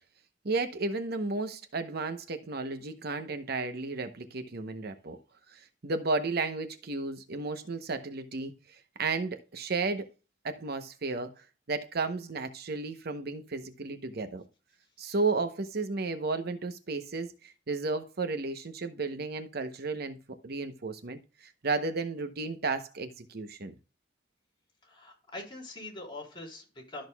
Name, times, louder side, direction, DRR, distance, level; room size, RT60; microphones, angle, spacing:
voice 1, 0.4-5.2 5.5-10.1 10.4-14.4 15.0-20.2 20.4-23.7, right 3 dB, 60° right, 0.8 m, -33 dB
voice 2, 24.8-27.1, left 2 dB, 25° left, 3.8 m, -43 dB
13.0 x 6.4 x 2.3 m
head